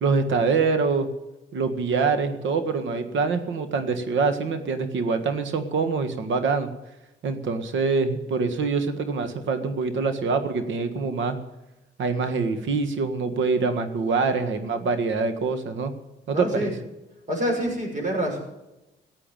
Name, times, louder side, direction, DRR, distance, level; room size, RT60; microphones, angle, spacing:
voice 1, 0.0-1.1 1.5-6.7 7.2-11.4 12.0-15.9 16.3-16.7, right 4 dB, 75° right, 9 dB, 1.8 m, -25 dB
voice 2, 16.3-16.7 17.3-18.4, equal, 40° right, 0 dB, 6.3 m, -26 dB
15.0 x 8.4 x 9.0 m, 0.98 s
cardioid pair, 90°, 20 cm